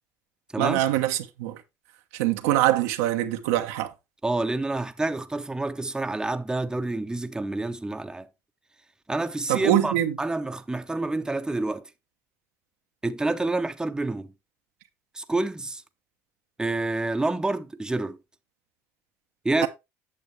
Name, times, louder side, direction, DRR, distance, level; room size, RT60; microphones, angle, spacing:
voice 1, 0.6-1.6 2.1-3.9 9.5-10.1, right 13 dB, 90° right, 1.0 m, -23 dB
voice 2, 4.2-8.3 9.1-11.9 13.0-14.3 15.1-15.8 16.6-18.2 19.4-19.7, right 2 dB, 10° right, 0.8 m, -28 dB
8.9 x 6.6 x 3.3 m
supercardioid pair, 85°, 7 cm